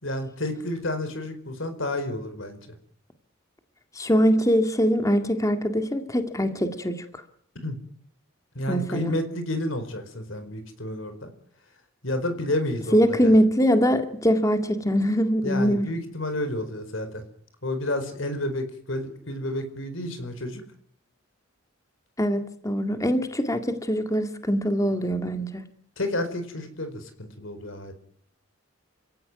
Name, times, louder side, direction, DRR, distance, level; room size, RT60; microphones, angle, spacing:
voice 1, 0.0-2.7 7.6-7.8 8.5-11.3 12.0-13.3 15.4-17.2 17.6-20.6 26.0-27.9, left 1 dB, 65° left, 9 dB, 4.5 m, -30 dB
voice 2, 4.0-6.9 8.7-9.1 12.9-15.9 22.2-25.6, equal, 15° left, 7 dB, 2.1 m, -22 dB
28.0 x 16.5 x 9.5 m, 0.64 s
head